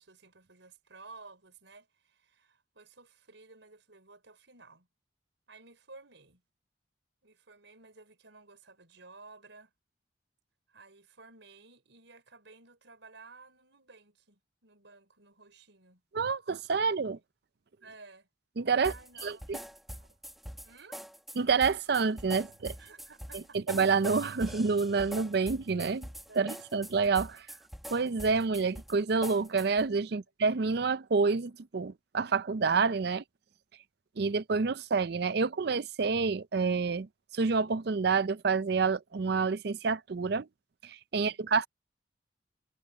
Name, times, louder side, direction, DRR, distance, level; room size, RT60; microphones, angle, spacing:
voice 1, 0.0-4.9 5.5-6.4 7.2-9.7 10.7-16.0 17.8-18.3 18.8-19.5 20.6-21.0 22.8-23.6 26.3-26.5 30.1-30.2 41.1-41.5, right 3 dB, 70° right, 5.0 m, -54 dB
voice 2, 16.1-17.2 18.6-18.9 19.2-19.6 21.4-22.7 23.7-26.1 26.4-27.4 27.9-33.2 34.2-37.1 37.3-40.5 40.8-41.7, right 4 dB, 55° right, 0.5 m, -28 dB
sound 1, 18.8-29.9, equal, ahead, 1.7 m, -44 dB
head